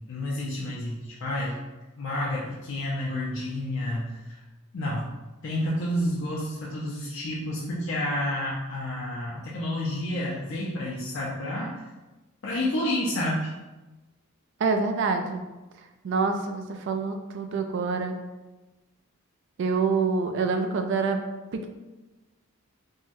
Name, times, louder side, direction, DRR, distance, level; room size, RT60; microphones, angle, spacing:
voice 1, 0.1-1.6 2.0-4.1 4.7-5.1 5.4-11.8 12.4-13.5, left 1 dB, 60° left, -5 dB, 0.4 m, -30 dB
voice 2, 14.6-15.4 16.0-18.2 19.6-21.2 21.5-21.7, right 4 dB, 55° right, 5 dB, 0.3 m, -26 dB
3.7 x 2.1 x 2.6 m, 1.1 s
head